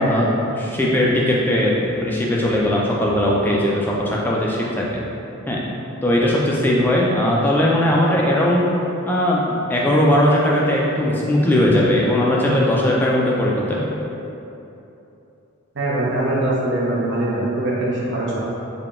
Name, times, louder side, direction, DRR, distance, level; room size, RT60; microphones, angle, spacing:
voice 1, 0.0-5.0 5.5-5.6 6.0-8.7 9.1-14.0, left 1 dB, 10° left, -4 dB, 0.3 m, -19 dB
voice 2, 15.7-18.4, right 1 dB, 55° right, -6 dB, 0.6 m, -22 dB
3.7 x 2.2 x 3.6 m, 2.9 s
head